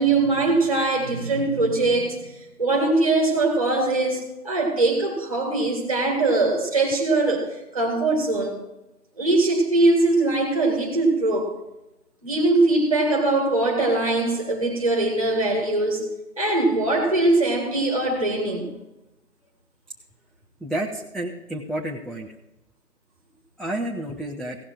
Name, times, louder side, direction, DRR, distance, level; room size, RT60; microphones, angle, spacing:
voice 1, 0.0-8.6 9.2-11.6 12.2-16.1 16.4-18.7, right 2 dB, 20° right, 1.8 m, -22 dB
voice 2, 20.6-22.3 23.6-24.6, right 1 dB, ahead, 0.5 m, -30 dB
16.5 x 6.8 x 4.6 m
figure-of-eight pair, 175°, 46 cm